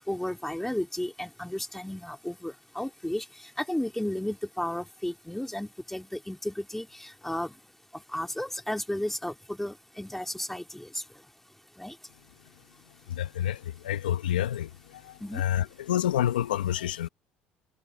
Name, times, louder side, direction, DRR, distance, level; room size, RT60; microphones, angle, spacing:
voice 1, 0.1-7.5 8.1-11.0 11.8-11.9 15.2-15.4, left 1 dB, 5° left, 3.1 m, -33 dB
voice 2, 13.2-13.6 13.8-14.7 15.4-17.1, left 11 dB, 85° left, 1.2 m, -27 dB
open air
hypercardioid pair, 65°, 5 cm